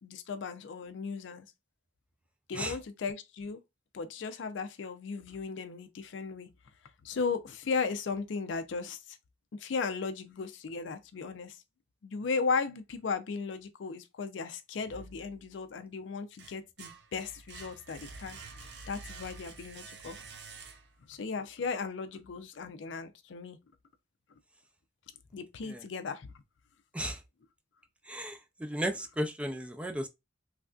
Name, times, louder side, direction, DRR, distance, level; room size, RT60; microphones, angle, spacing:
voice 1, 0.0-1.5 2.5-3.6 3.9-6.5 7.0-9.2 9.6-11.6 12.0-18.4 18.9-20.2 21.0-23.6 25.3-26.3, left 5 dB, 80° left, 0.4 m, -36 dB
sound 1, 14.8-15.7 16.1-21.1, right 4 dB, 70° right, 0.6 m, -48 dB
voice 2, 28.1-30.1, equal, 5° right, 0.4 m, -34 dB
3.2 x 2.5 x 2.3 m
head